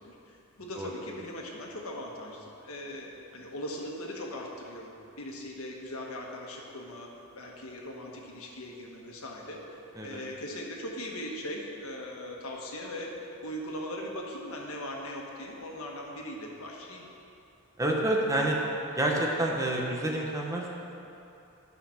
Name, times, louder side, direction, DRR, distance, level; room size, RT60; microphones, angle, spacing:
voice 1, 0.0-4.9 5.2-7.1 7.4-13.1 13.4-17.0, left 1 dB, 75° left, -1 dB, 1.4 m, -39 dB
voice 2, 17.8-18.6 18.9-20.7, right 1 dB, 15° right, -2 dB, 1.1 m, -28 dB
11.5 x 5.9 x 5.8 m, 2.8 s
head